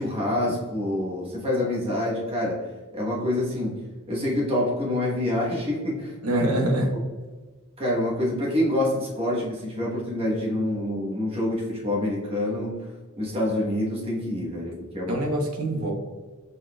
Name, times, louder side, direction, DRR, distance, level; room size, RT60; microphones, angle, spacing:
voice 1, 0.0-2.7 2.9-6.4 7.8-12.9 13.2-15.2, left 1 dB, 25° right, -4 dB, 1.2 m, -27 dB
voice 2, 6.2-6.9 15.1-15.9, right 1 dB, 75° right, 2 dB, 0.9 m, -24 dB
5.5 x 3.9 x 2.3 m, 1.3 s
head